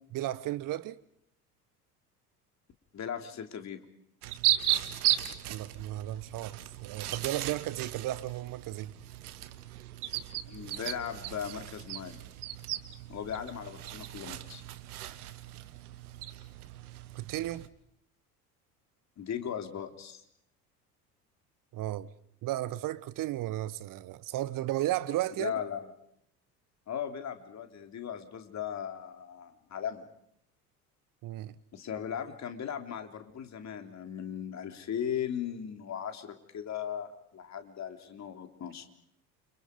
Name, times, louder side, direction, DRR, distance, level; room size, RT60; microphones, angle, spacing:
voice 1, 0.1-1.0 5.5-8.9 17.1-17.7 21.7-22.1 22.4-25.5 31.2-31.5, right 15 dB, 45° right, 1.3 m, -34 dB
voice 2, 2.9-3.8 10.5-12.2 13.1-14.6 15.6-15.7 19.2-20.2 25.4-25.8 26.9-30.0 31.7-38.8, left 8 dB, 35° left, 3.4 m, -38 dB
sound 1, 4.2-17.7, right 13 dB, 70° right, 1.6 m, -36 dB
29.5 x 27.0 x 5.3 m
figure-of-eight pair, 65°, 46 cm